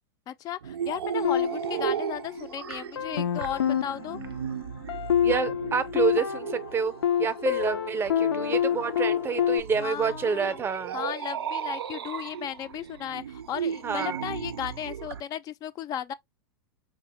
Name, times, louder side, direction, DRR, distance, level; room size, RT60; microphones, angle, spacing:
voice 1, 0.3-4.2 9.8-10.6 10.9-16.1, left 10 dB, 30° left, 0.3 m, -35 dB
sound 1, 0.6-15.2, right 8 dB, 90° right, 0.4 m, -36 dB
sound 2, 1.2-2.5 3.0-9.6, left 9 dB, 90° left, 0.5 m, -28 dB
voice 2, 5.2-6.9 7.2-11.0 13.8-14.2, right 6 dB, 20° right, 0.6 m, -28 dB
4.7 x 2.1 x 2.9 m
hypercardioid pair, 110°, 13 cm